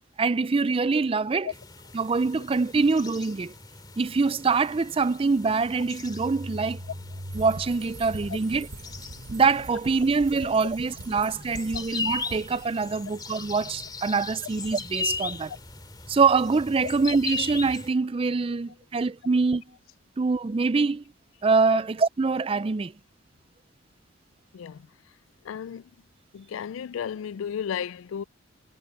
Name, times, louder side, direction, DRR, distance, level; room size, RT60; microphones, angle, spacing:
voice 1, 0.2-1.5 1.9-3.5 4.0-6.8 7.3-8.7 9.3-15.5 16.1-19.6 20.2-21.0 21.4-22.9, right 4 dB, 30° right, 0.4 m, -24 dB
sound 1, 1.5-17.9, left 4 dB, 20° left, 2.3 m, -38 dB
sound 2, 5.6-17.1, equal, 55° right, 1.5 m, -45 dB
sound 3, 7.3-12.7, right 3 dB, 75° right, 1.4 m, -44 dB
voice 2, 24.5-24.9 25.4-25.9 26.3-28.2, left 8 dB, 85° left, 0.3 m, -33 dB
head